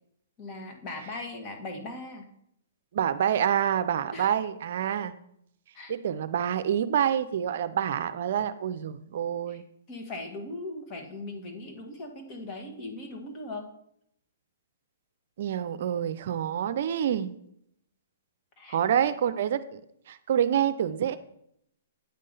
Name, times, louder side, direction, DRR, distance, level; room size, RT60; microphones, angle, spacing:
voice 1, 0.4-2.3 4.1-4.3 5.7-5.9 9.5-9.6 9.9-13.7 18.6-18.8, left 2 dB, 30° left, 3 dB, 1.7 m, -39 dB
voice 2, 2.9-5.1 5.9-9.6 15.4-17.3 18.7-19.8 20.1-21.2, right 9 dB, 60° right, 12 dB, 0.5 m, -27 dB
8.7 x 3.7 x 5.4 m, 0.72 s
hypercardioid pair, 130°, 0 cm